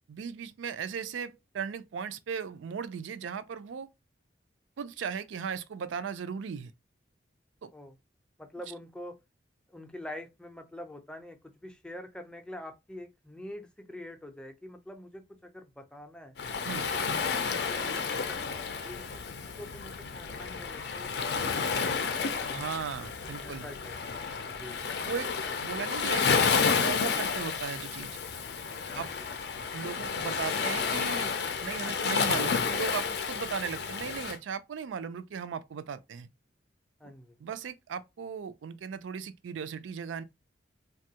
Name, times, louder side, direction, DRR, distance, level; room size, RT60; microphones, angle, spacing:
voice 1, 0.1-3.9 4.8-6.7 7.6-7.7 16.7-16.9 22.5-23.7 25.0-25.3 25.6-28.2 28.9-29.1 29.7-36.3 37.4-40.2, right 6 dB, 85° right, 0.4 m, -37 dB
voice 2, 8.4-9.2 9.7-16.3 16.7-19.2 19.6-21.1 23.4-24.0 24.5-24.8 28.9-29.3 37.0-37.3, left 1 dB, 5° left, 0.4 m, -45 dB
Waves surf, 16.4-34.4, left 5 dB, 60° left, 0.5 m, -31 dB
3.3 x 2.3 x 2.8 m
head